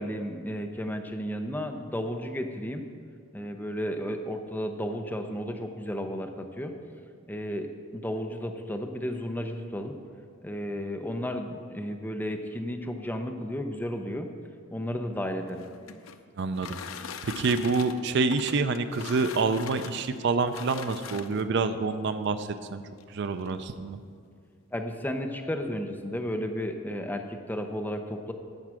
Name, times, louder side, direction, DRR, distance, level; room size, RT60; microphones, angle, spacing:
voice 1, 0.0-2.8 3.3-6.7 7.3-7.7 7.9-9.9 10.4-14.3 14.7-15.6 24.7-28.3, equal, 10° left, 4 dB, 0.6 m, -33 dB
sound 1, 15.4-21.6 22.5-22.6 23.0-23.1 23.4-23.8, left 7 dB, 75° left, 0.5 m, -42 dB
voice 2, 16.4-16.8 17.2-22.8 23.1-24.0, right 4 dB, 55° right, 10 dB, 0.4 m, -27 dB
11.0 x 4.7 x 7.5 m, 2.1 s
head